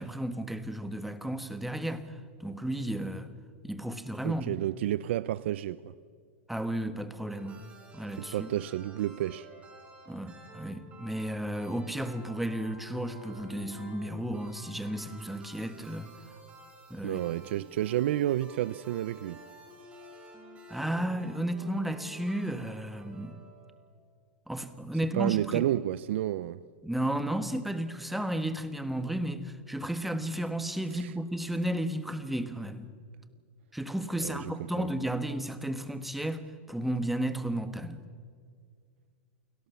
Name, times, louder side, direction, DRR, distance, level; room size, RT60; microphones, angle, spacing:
voice 1, 0.0-3.3 3.6-4.6 6.5-7.6 7.9-8.5 10.1-16.1 16.9-17.2 20.7-23.4 24.5-25.7 26.8-32.9 33.7-38.0, right 1 dB, ahead, 1.4 m, -33 dB
voice 2, 4.2-5.9 8.2-9.5 17.0-19.4 25.1-26.6 30.9-31.1 34.2-34.9, right 13 dB, 70° right, 0.6 m, -30 dB
sound 1, 7.3-23.9, right 2 dB, 20° right, 4.9 m, -51 dB
29.5 x 18.0 x 7.1 m
supercardioid pair, 140°, 7 cm